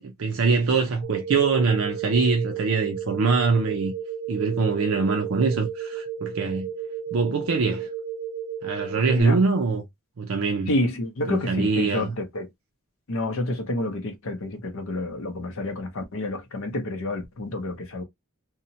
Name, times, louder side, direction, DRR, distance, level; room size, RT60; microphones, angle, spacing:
voice 1, 0.0-3.9 4.3-6.7 7.1-7.9 8.6-9.8 10.2-10.7 11.3-12.1, right 4 dB, 80° right, 0.5 m, -23 dB
sound 1, 1.0-9.2, right 7 dB, 45° right, 0.7 m, -33 dB
voice 2, 10.7-12.5 13.1-18.0, left 1 dB, 70° left, 0.6 m, -29 dB
2.8 x 2.1 x 2.6 m
head